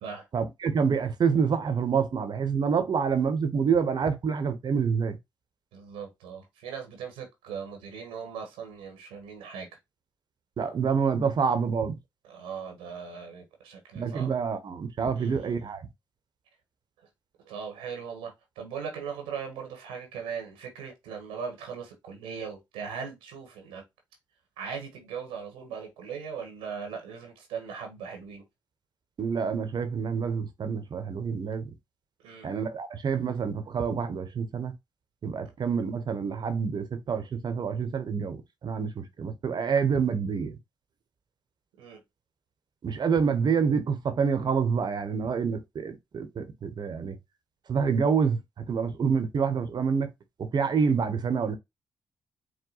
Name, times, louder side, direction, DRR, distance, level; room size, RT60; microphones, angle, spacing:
voice 1, 0.3-5.2 10.6-11.9 13.9-15.9 29.2-31.7 32.4-34.7 35.2-40.5 42.8-47.2 47.7-48.4 48.7-50.1 50.4-51.6, right 6 dB, 55° right, 1.0 m, -27 dB
voice 2, 5.7-9.7 12.2-14.3 15.1-15.7 17.4-23.8 24.6-28.4 32.2-32.5 41.8-42.0, right 6 dB, 90° right, 1.3 m, -39 dB
4.9 x 2.2 x 3.9 m
supercardioid pair, 50°, 9 cm